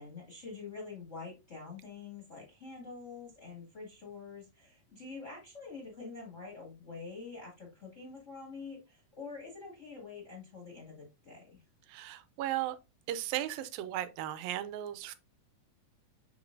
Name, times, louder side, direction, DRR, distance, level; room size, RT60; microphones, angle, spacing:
voice 1, 0.0-11.6, left 4 dB, 25° left, 1.9 m, -46 dB
voice 2, 11.9-12.8 13.1-15.2, right 13 dB, 90° right, 2.4 m, -36 dB
6.3 x 6.1 x 2.6 m
omnidirectional pair, 4.0 m